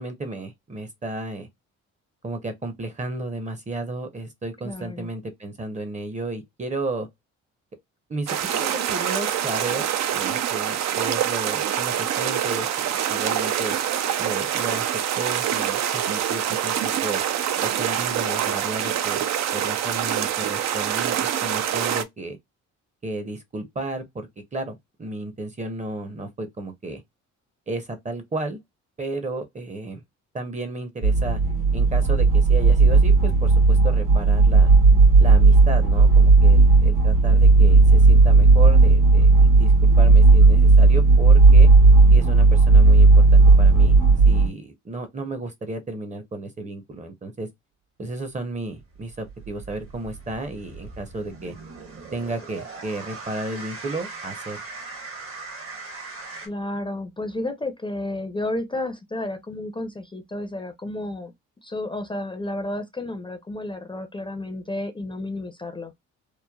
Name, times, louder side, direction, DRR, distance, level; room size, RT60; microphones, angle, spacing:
voice 1, 0.0-1.5 2.2-7.1 8.1-13.8 14.2-14.9 15.2-17.2 17.6-19.2 19.5-22.4 23.0-27.0 27.7-28.6 29.0-30.0 30.3-31.4 31.7-34.7 35.2-41.7 42.1-44.0 44.3-47.5 48.0-51.6 52.1-54.6, right 2 dB, 25° right, 0.7 m, -33 dB
voice 2, 4.6-5.1 56.4-61.3 61.6-65.9, left 1 dB, 15° left, 0.5 m, -31 dB
sound 1, 8.3-22.0, right 10 dB, 65° right, 0.5 m, -25 dB
sound 2, 31.0-44.5, right 3 dB, 85° right, 1.4 m, -14 dB
sound 3, 48.6-56.5, right 4 dB, 45° right, 1.0 m, -40 dB
3.1 x 2.1 x 2.2 m
cardioid pair, 90°, 30 cm